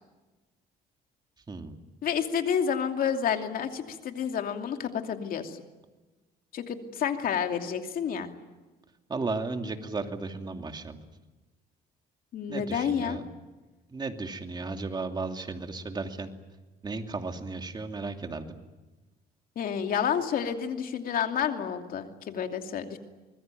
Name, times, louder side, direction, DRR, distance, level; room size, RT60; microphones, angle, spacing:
voice 1, 1.5-1.8 9.1-11.0 12.5-13.2 13.9-16.3 16.8-18.6, right 3 dB, 25° right, 5 dB, 2.7 m, -34 dB
voice 2, 2.0-5.6 6.5-8.3 12.3-13.2 19.6-23.0, left 7 dB, 60° left, 5 dB, 2.8 m, -29 dB
25.0 x 21.0 x 9.2 m, 1.2 s
cardioid pair, 110°, 17 cm